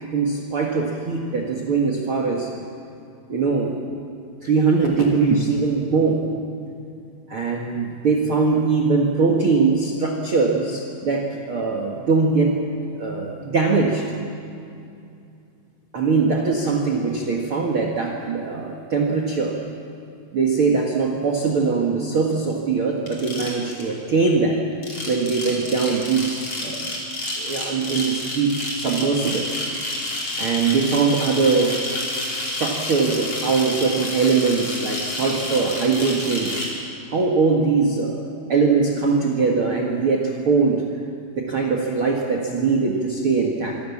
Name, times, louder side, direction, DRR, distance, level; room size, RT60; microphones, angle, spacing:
voice 1, 0.0-2.5 3.3-3.7 4.4-6.2 7.3-12.6 12.9-14.0 15.9-19.6 20.3-24.6 25.1-26.9 27.4-29.5 30.4-31.7 32.4-36.5 37.1-38.2 38.5-40.8 41.4-43.8, right 4 dB, 60° right, -1 dB, 1.4 m, -21 dB
sound 1, 23.1-23.9 24.7-36.7, left 1 dB, 30° left, 5.7 m, -29 dB
25.5 x 25.0 x 7.3 m, 2.6 s
omnidirectional pair, 5.5 m